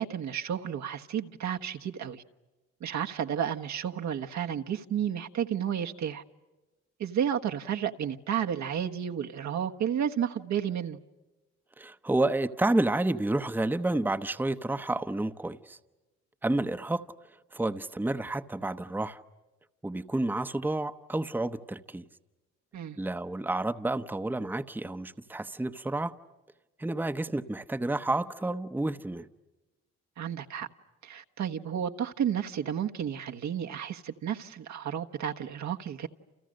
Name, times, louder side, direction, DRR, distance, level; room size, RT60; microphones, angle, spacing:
voice 1, 0.0-2.2 2.8-6.2 7.0-11.0 22.7-23.0 30.2-30.7 31.0-36.1, right 9 dB, 65° right, 1.4 m, -32 dB
voice 2, 11.8-15.8 16.4-17.0 17.5-19.2 19.8-22.0 23.0-26.1 26.8-29.3, right 2 dB, 5° right, 0.9 m, -30 dB
29.5 x 29.5 x 6.5 m
cardioid pair, 90°, 30 cm